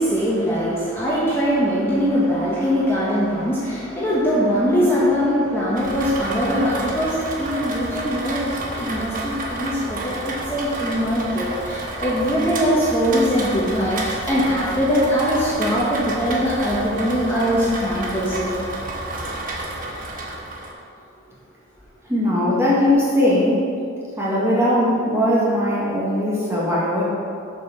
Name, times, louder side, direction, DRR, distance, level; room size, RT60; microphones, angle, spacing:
voice 1, 0.0-18.6, equal, 10° left, -9 dB, 1.4 m, -21 dB
Rain, 5.8-20.7, right 2 dB, 40° right, 1.1 m, -30 dB
voice 2, 22.1-23.7 24.2-27.1, left 1 dB, 10° right, -7 dB, 1.9 m, -19 dB
7.6 x 5.6 x 6.8 m, 2.4 s
head